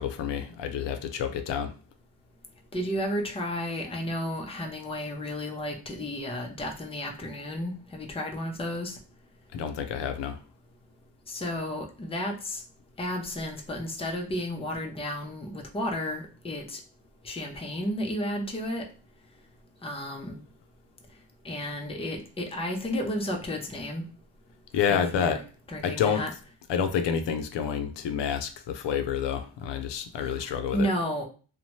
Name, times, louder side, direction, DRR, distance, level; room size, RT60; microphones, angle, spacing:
voice 1, 0.0-1.7 9.5-10.4 24.7-25.4 25.8-26.2 26.7-30.9, left 7 dB, 85° left, 7 dB, 0.5 m, -28 dB
voice 2, 2.7-9.0 11.3-12.6 13.0-16.8 17.2-18.9 19.8-20.4 21.4-24.0 24.9-25.4 25.7-26.3 30.2-31.3, equal, 15° left, 2 dB, 0.5 m, -32 dB
2.7 x 2.1 x 3.0 m, 0.37 s
cardioid pair, 115°, 42 cm